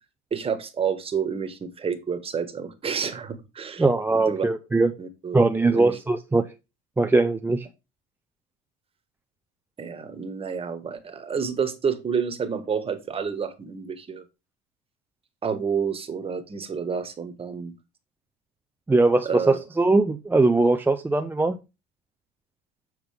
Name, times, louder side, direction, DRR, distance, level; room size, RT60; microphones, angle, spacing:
voice 1, 0.3-3.8 4.1-4.4 5.0-5.4 5.7-6.0 9.8-14.2 15.4-17.7 19.2-19.6, right 6 dB, 30° right, 9 dB, 1.5 m, -29 dB
voice 2, 3.8-4.9 5.3-6.4 7.0-7.7 18.9-21.6, right 3 dB, 10° right, 6 dB, 0.6 m, -21 dB
7.7 x 5.7 x 3.4 m, 0.26 s
supercardioid pair, 100°, 20 cm